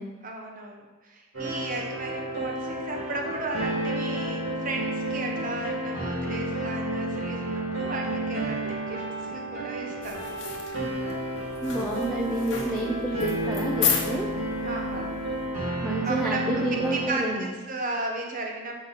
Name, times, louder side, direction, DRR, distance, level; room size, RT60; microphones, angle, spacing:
voice 1, 0.2-10.4 12.2-12.4 13.6-13.7 14.6-15.2 16.0-16.4 16.7-18.8, right 2 dB, 40° right, 0 dB, 1.1 m, -35 dB
sound 1, 1.3-17.1, right 1 dB, 75° right, 2.1 m, -31 dB
sound 2, 10.0-15.6, left 7 dB, 55° left, 1.1 m, -33 dB
voice 2, 11.6-14.3 15.8-17.5, right 1 dB, ahead, -4 dB, 0.5 m, -29 dB
7.5 x 5.2 x 4.1 m, 1.2 s
head